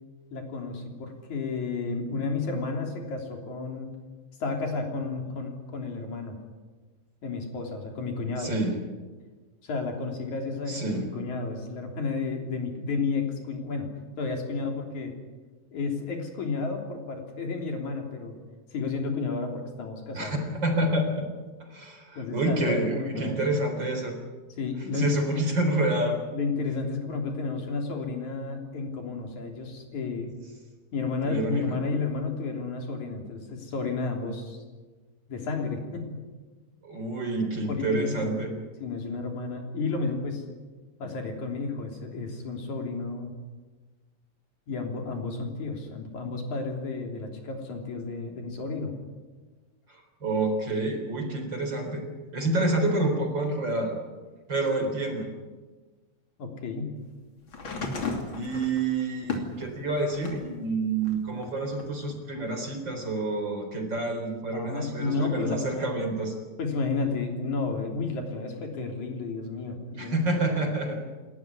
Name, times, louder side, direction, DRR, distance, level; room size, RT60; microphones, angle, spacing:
voice 1, 0.3-3.9 4.4-6.4 7.2-8.5 9.6-13.9 14.2-15.1 15.7-18.4 18.7-20.4 22.2-23.4 24.6-25.3 26.3-30.3 30.9-34.6 35.3-36.3 37.7-38.3 38.8-40.4 41.0-43.3 44.7-49.0 54.8-54.9 56.4-57.0 64.5-65.9 66.6-70.2 70.8-71.0, left 4 dB, 80° left, 2 dB, 4.8 m, -32 dB
voice 2, 8.4-8.7 10.7-11.0 20.1-21.2 21.6-24.2 24.9-26.2 31.2-31.8 36.8-38.5 49.9-52.0 52.3-53.9 54.5-55.3 58.3-66.3 70.0-71.0, right 2 dB, 40° right, 4 dB, 4.4 m, -28 dB
sound 1, 57.5-60.5 61.0-62.2 63.2-63.3, left 4 dB, 45° left, 3.4 m, -35 dB
28.5 x 14.0 x 9.8 m, 1.3 s
omnidirectional pair, 3.3 m